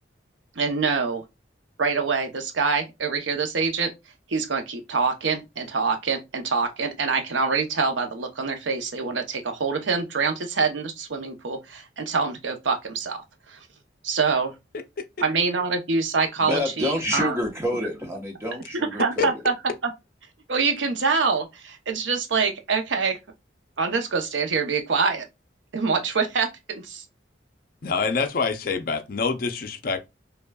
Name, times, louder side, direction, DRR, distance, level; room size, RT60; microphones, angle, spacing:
voice 1, 0.6-1.2 1.8-3.9 4.3-13.2 13.5-13.6 14.0-14.5 15.2-17.4 18.9-19.5 19.8-19.9 20.5-23.2 23.8-25.3 25.7-27.0, right 4 dB, 85° right, 0.7 m, -25 dB
voice 2, 16.4-19.4, left 1 dB, 15° right, 1.0 m, -28 dB
voice 3, 27.8-30.0, left 5 dB, 50° left, 0.5 m, -25 dB
5.3 x 2.3 x 2.3 m
head